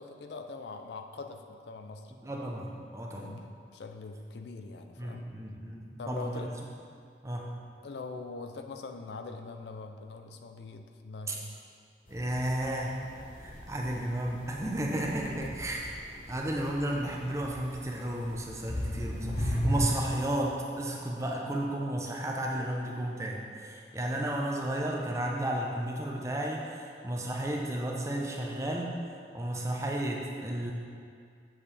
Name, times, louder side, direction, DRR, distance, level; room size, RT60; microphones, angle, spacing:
voice 1, 0.0-2.1 3.1-5.3 6.0-6.5 7.8-11.6 15.4-15.5, left 3 dB, 70° left, 6 dB, 0.4 m, -42 dB
voice 2, 2.2-3.4 5.0-6.5 7.2-7.5 11.3-11.4 12.1-13.0 13.4-15.9 16.3-28.9 29.3-30.7, right 1 dB, 15° right, -1 dB, 0.7 m, -33 dB
sound 1, 12.1-19.8, equal, 45° left, 1.2 m, -37 dB
7.3 x 7.2 x 3.4 m, 2.3 s
head